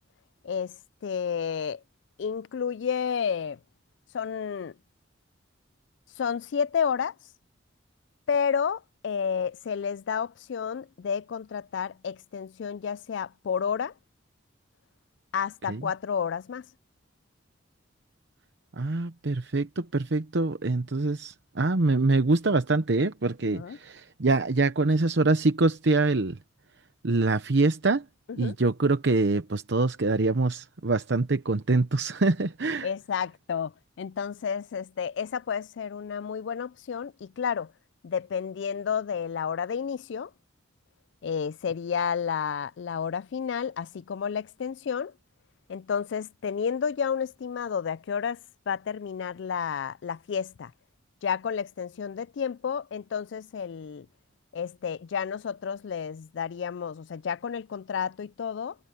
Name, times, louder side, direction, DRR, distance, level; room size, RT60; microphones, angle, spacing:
voice 1, 0.4-0.8 1.0-1.8 2.2-3.6 4.1-4.7 6.2-7.1 8.3-13.9 15.3-16.7 23.5-23.8 28.3-28.5 32.8-37.7 38.0-40.3 41.2-45.1 45.7-48.4 48.7-50.7 51.2-54.1 54.5-58.8, left 7 dB, 65° left, 0.4 m, -31 dB
voice 2, 18.8-26.4 27.0-28.0 28.4-32.9, right 3 dB, 65° right, 0.9 m, -25 dB
head